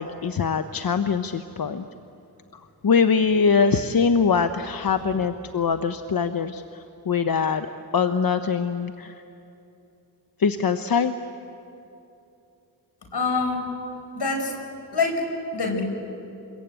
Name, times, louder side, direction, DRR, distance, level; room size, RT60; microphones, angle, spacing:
voice 1, 0.0-1.8 2.8-7.7 7.9-9.1 10.4-11.1, left 5 dB, 60° left, 9 dB, 0.9 m, -23 dB
voice 2, 13.1-13.6 14.2-14.5 14.9-15.2 15.5-15.8, left 4 dB, 80° left, 3 dB, 5.2 m, -24 dB
27.0 x 22.5 x 9.1 m, 2.8 s
cardioid pair, 65°, 39 cm